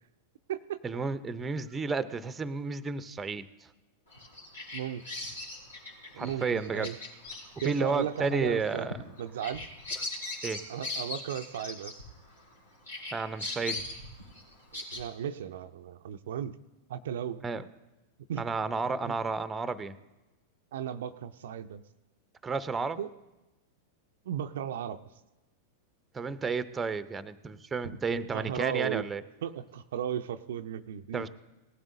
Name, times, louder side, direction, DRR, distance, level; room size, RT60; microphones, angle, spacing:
voice 1, 0.8-3.5 6.2-6.9 7.6-8.9 10.4-10.6 13.1-13.9 17.4-17.6 18.4-20.0 22.4-23.0 26.1-29.2 31.1-31.3, right 4 dB, 15° right, 13 dB, 0.6 m, -32 dB
Bird vocalization bird call bird song, 4.1-12.5 12.9-15.0, left 2 dB, 75° left, 3.1 m, -40 dB
voice 2, 4.7-5.0 6.1-7.0 7.6-8.9 9.2-9.7 10.7-12.0 14.7-16.5 16.9-17.5 18.3-18.5 19.0-19.1 20.7-21.8 23.0-23.1 24.3-25.0 27.8-28.0 28.3-29.1 29.4-31.3, right 9 dB, 60° right, 8 dB, 0.5 m, -35 dB
18.5 x 12.5 x 2.7 m, 1.1 s
figure-of-eight pair, 90°, 0 cm